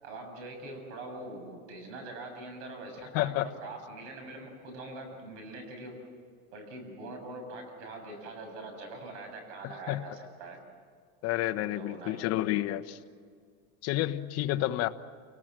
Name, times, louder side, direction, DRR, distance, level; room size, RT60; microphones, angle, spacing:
voice 1, 0.0-6.0 6.5-10.6 11.6-12.4, right 2 dB, 75° right, 5 dB, 7.3 m, -43 dB
voice 2, 3.1-3.5 9.6-10.0 11.2-13.0 13.8-14.9, left 15 dB, 45° left, 7 dB, 1.0 m, -30 dB
28.5 x 19.0 x 7.6 m, 2.1 s
supercardioid pair, 155°, 35 cm